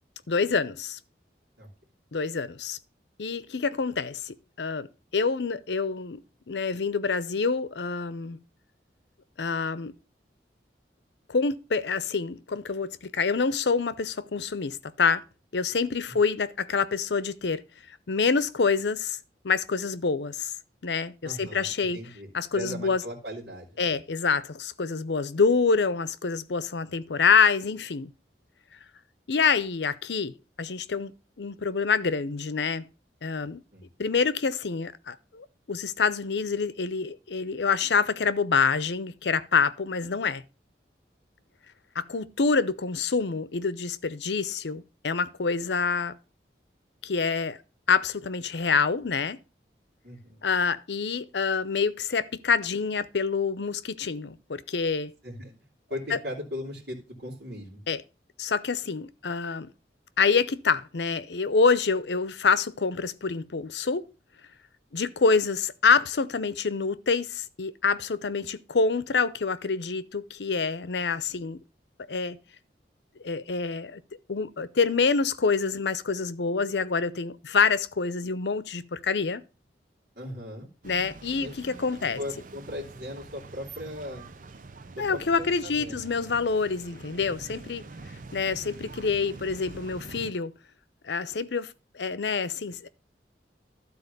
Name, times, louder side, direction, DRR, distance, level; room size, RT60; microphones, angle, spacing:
voice 1, 0.3-1.0 2.1-2.8 3.2-4.9 5.1-6.2 6.5-8.4 9.4-9.9 11.3-15.2 15.5-17.6 18.1-19.2 19.4-20.5 20.8-22.0 22.3-23.0 23.8-28.1 29.3-31.1 31.4-32.9 33.2-33.6 34.0-40.4 42.0-46.1 47.0-47.6 47.9-49.4 50.4-55.1 56.1-56.2 57.9-58.0 58.4-59.7 60.2-64.1 64.9-71.6 72.1-72.4 73.2-74.0 74.3-79.4 80.8-82.2 85.0-87.8 88.3-90.5 91.0-92.9, left 5 dB, 80° left, 0.7 m, -26 dB
voice 2, 21.2-21.7 21.9-23.8 33.7-33.9 50.0-50.4 55.2-55.5 55.9-57.8 80.2-80.7 81.3-81.5 82.2-84.2 85.0-86.0 87.5-87.9, left 1 dB, 70° right, 2.9 m, -38 dB
sound 1, 80.8-90.3, right 3 dB, 45° right, 0.7 m, -45 dB
12.0 x 4.2 x 6.7 m
head